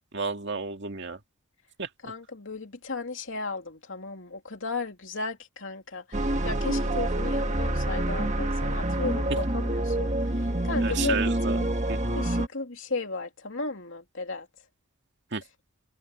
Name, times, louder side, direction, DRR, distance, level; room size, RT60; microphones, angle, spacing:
voice 1, 0.1-1.2 1.8-1.9 10.8-11.6 11.9-12.0 15.3-15.4, right 5 dB, 55° right, 2.3 m, -31 dB
voice 2, 2.0-10.1 10.4-11.2 11.5-11.7 12.1-14.5, left 3 dB, 65° left, 3.0 m, -35 dB
sound 1, 6.1-12.5, right 1 dB, 35° right, 1.7 m, -27 dB
open air
head